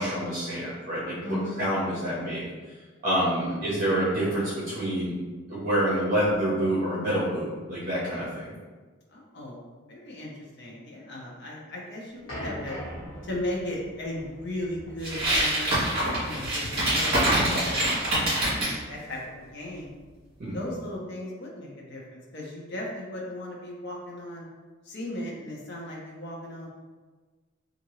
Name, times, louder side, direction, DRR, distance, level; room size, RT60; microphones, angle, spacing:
voice 1, 0.0-2.4 3.0-5.1 5.5-8.5 17.2-17.5 20.4-20.6, right 1 dB, 45° right, -8 dB, 0.7 m, -27 dB
voice 2, 1.2-1.7 3.4-3.7 9.1-9.6 9.9-10.3 10.6-12.8 13.2-18.5 18.9-19.9 20.5-24.5 24.8-26.7, left 1 dB, 60° left, -3 dB, 0.7 m, -37 dB
sound 1, 12.3-17.7, equal, 80° left, 1.2 m, -42 dB
sound 2, 15.0-18.8, right 1 dB, 30° right, 1.3 m, -25 dB
2.8 x 2.5 x 3.0 m, 1.4 s
head